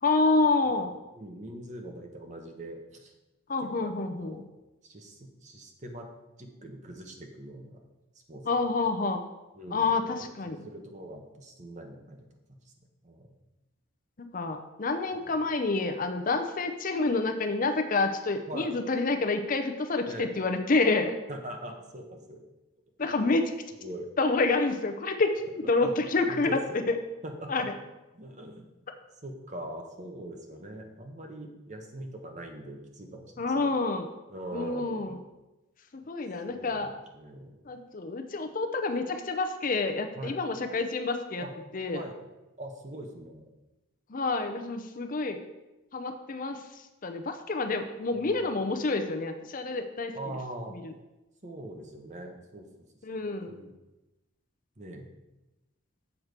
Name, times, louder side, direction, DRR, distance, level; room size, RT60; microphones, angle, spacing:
voice 1, 0.0-0.9 3.5-4.4 8.5-9.2 9.7-10.7 14.2-21.2 23.0-23.5 24.2-26.6 26.9-27.0 27.5-27.6 33.4-34.1 34.5-35.2 35.9-36.9 37.7-41.5 41.7-42.0 44.1-45.4 45.9-50.2 50.7-50.9 53.0-53.6, left 3 dB, 40° left, 6 dB, 0.6 m, -28 dB
voice 2, 1.1-3.1 3.8-4.4 4.8-6.1 6.4-7.8 8.3-8.5 9.6-9.9 10.2-12.3 12.6-12.7 13.0-13.4 15.1-15.2 18.5-18.7 20.1-20.3 21.3-22.4 23.2-23.3 23.8-24.1 25.8-25.9 26.3-26.8 27.2-27.7 28.1-28.7 29.2-33.7 34.3-35.1 36.5-37.6 40.2-40.4 41.4-41.5 41.9-42.1 42.6-43.5 48.2-48.6 50.1-50.8 51.4-52.8 53.5-53.7 54.8-55.1, right 1 dB, 35° right, 4 dB, 1.0 m, -42 dB
7.2 x 4.7 x 6.6 m, 1.0 s
head